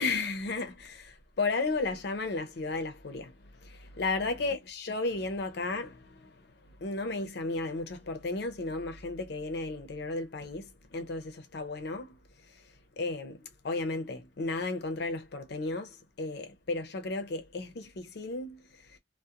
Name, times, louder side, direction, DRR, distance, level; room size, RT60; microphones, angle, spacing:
voice 1, 0.0-19.0, left 3 dB, 65° left, 0.5 m, -34 dB
2.4 x 2.0 x 2.7 m
head